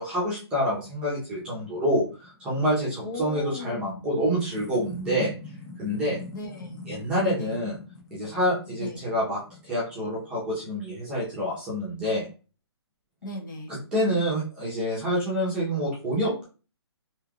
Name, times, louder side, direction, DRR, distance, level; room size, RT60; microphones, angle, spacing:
voice 1, 0.0-5.3 5.8-6.2 6.9-7.8 8.1-12.3 13.7-16.4, equal, 5° right, -8 dB, 0.8 m, -27 dB
sound 1, 1.3-10.8, left 3 dB, 10° left, 0.4 m, -45 dB
voice 2, 3.0-4.1 6.3-6.8 7.2-7.6 8.8-9.1 13.2-13.7, left 1 dB, 45° left, 1 dB, 1.0 m, -37 dB
3.3 x 2.8 x 2.4 m, 0.35 s
hypercardioid pair, 170°, 14 cm